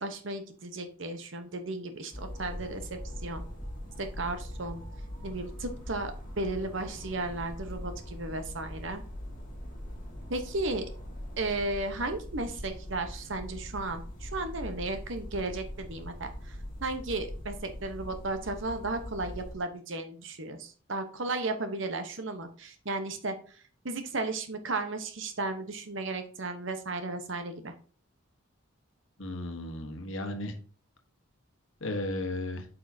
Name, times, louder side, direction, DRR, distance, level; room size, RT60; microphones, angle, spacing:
voice 1, 0.0-3.4 4.0-4.8 5.2-9.0 10.3-10.9 11.4-23.3 23.8-27.7, right 2 dB, 65° right, 7 dB, 1.0 m, -34 dB
sound 1, 2.1-19.5, equal, 40° left, 2.1 m, -42 dB
voice 2, 29.2-30.5 31.8-32.7, left 1 dB, 65° left, 4 dB, 1.2 m, -34 dB
8.7 x 5.5 x 2.7 m, 0.40 s
head